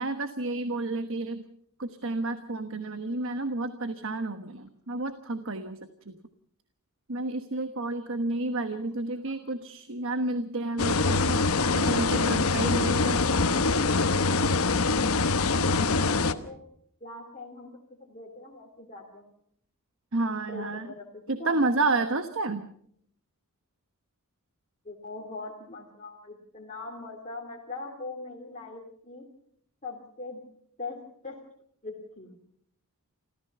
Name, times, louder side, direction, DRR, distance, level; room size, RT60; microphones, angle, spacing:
voice 1, 0.0-1.4 1.8-5.8 6.1-6.2 7.1-11.4 11.7-13.2 20.1-20.9 21.3-22.7, right 2 dB, 60° right, 9 dB, 1.3 m, -30 dB
sound 1, 10.8-16.3, left 3 dB, 70° left, 1.1 m, -24 dB
voice 2, 15.5-16.6 17.0-19.3 20.5-21.1 21.4-21.6 24.8-29.3 29.8-30.4 30.8-31.0 31.2-31.4 31.8-32.3, left 3 dB, 35° left, -2 dB, 2.8 m, -41 dB
27.5 x 15.0 x 6.9 m, 0.68 s
head